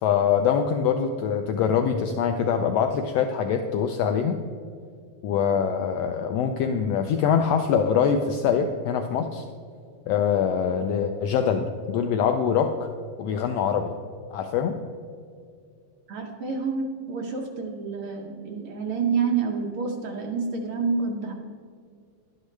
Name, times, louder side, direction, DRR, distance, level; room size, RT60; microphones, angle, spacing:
voice 1, 0.0-4.4 5.2-9.4 10.1-12.9 13.2-13.9 14.3-14.8, left 7 dB, 85° left, 6 dB, 1.4 m, -24 dB
voice 2, 16.1-21.3, right 5 dB, 65° right, 1 dB, 1.4 m, -28 dB
11.5 x 10.0 x 3.2 m, 2.2 s
omnidirectional pair, 3.4 m